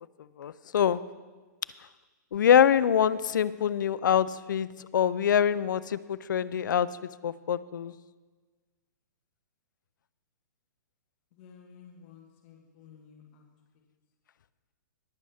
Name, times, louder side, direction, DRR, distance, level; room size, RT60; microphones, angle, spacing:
voice 1, 0.4-1.0 2.3-4.7 4.9-6.9 7.2-7.9, left 9 dB, 80° left, 17 dB, 0.5 m, -24 dB
voice 2, 11.3-13.5, left 7 dB, 40° left, 0 dB, 1.6 m, -53 dB
20.5 x 7.5 x 3.5 m, 1.4 s
hypercardioid pair, 160°, 10 cm